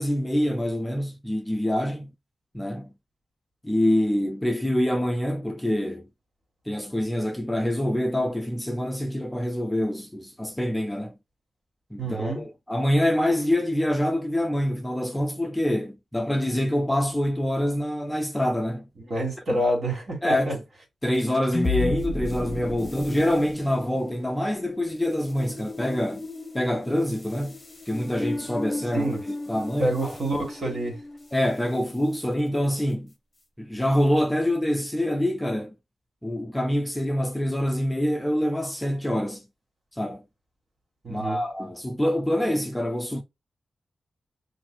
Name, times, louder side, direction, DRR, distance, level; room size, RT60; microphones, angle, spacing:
voice 1, 0.0-2.1 2.5-2.9 3.6-6.1 6.7-11.1 11.9-18.9 20.2-20.6 21.0-26.2 26.5-27.6 27.9-29.1 29.5-30.2 31.3-33.1 33.6-35.7 36.2-39.4 39.9-40.2 41.1-43.2, left 1 dB, 5° left, 0.5 m, -25 dB
voice 2, 12.0-12.4 19.0-20.5 28.9-29.2 29.8-31.0 41.0-41.4, right 1 dB, 55° right, 2.0 m, -27 dB
sound 1, 21.1-31.7, left 3 dB, 25° left, 0.8 m, -34 dB
5.9 x 2.6 x 2.2 m
wide cardioid pair, 115°, 0 cm